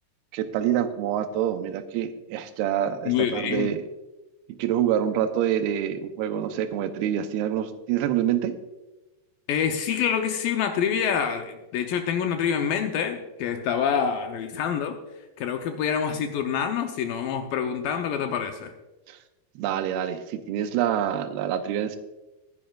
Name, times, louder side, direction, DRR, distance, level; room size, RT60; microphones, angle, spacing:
voice 1, 0.3-3.8 4.5-8.5 19.1-19.2 19.6-22.0, right 10 dB, 80° right, 9 dB, 2.6 m, -26 dB
voice 2, 3.1-3.7 9.5-15.0 15.4-18.7, left 7 dB, 75° left, 5 dB, 2.2 m, -26 dB
19.5 x 10.5 x 2.4 m, 1.1 s
omnidirectional pair, 4.6 m